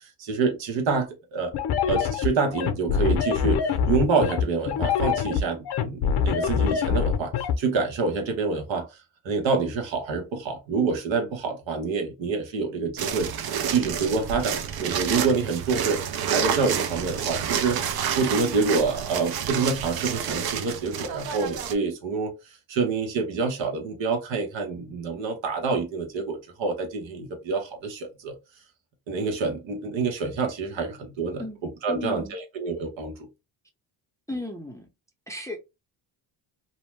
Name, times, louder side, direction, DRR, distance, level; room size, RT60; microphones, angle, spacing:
voice 1, 0.0-1.5 1.9-8.9 9.2-16.0 16.3-22.3 22.7-28.3 29.1-31.4 31.8-33.3, right 4 dB, 70° right, 1.1 m, -27 dB
sound 1, 1.5-7.6, left 7 dB, 55° left, 0.7 m, -24 dB
sound 2, 13.0-21.7, right 8 dB, 50° right, 0.6 m, -29 dB
voice 2, 31.9-32.4 34.3-34.9 35.3-35.6, left 2 dB, 5° left, 0.6 m, -34 dB
2.7 x 2.2 x 3.2 m
cardioid pair, 85°, 48 cm